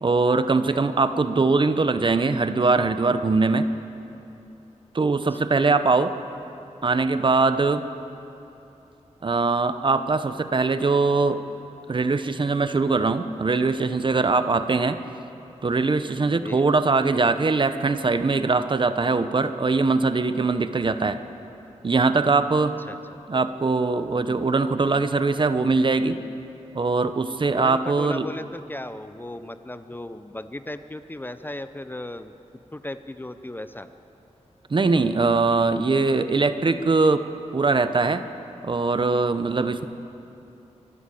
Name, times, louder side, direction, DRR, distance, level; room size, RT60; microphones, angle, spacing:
voice 1, 0.0-3.7 4.9-6.1 6.8-7.8 9.2-11.4 11.9-15.0 15.6-21.2 21.8-22.7 23.3-26.2 26.7-28.2 34.7-38.2 38.6-39.8, right 3 dB, 40° right, 11 dB, 0.9 m, -22 dB
voice 2, 22.9-23.2 27.5-32.3 32.7-33.9, left 1 dB, 15° left, 11 dB, 0.6 m, -36 dB
24.5 x 12.5 x 8.5 m, 2.8 s
wide cardioid pair, 100°, 12 cm